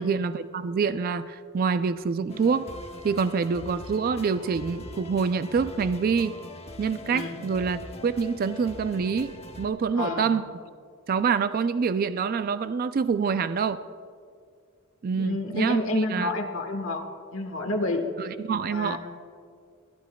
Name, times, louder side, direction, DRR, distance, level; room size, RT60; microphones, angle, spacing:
voice 1, 0.0-2.7 3.0-6.4 6.8-10.4 11.1-13.8 15.0-15.8 16.1-16.3 18.2-19.0, right 5 dB, 45° right, 12 dB, 0.3 m, -26 dB
sound 1, 2.3-9.7, left 1 dB, 30° left, 0.9 m, -42 dB
voice 2, 9.9-10.3 15.1-17.0 17.3-18.0 18.7-19.0, left 2 dB, 70° left, 4 dB, 1.3 m, -29 dB
25.5 x 10.5 x 2.2 m, 2.2 s
head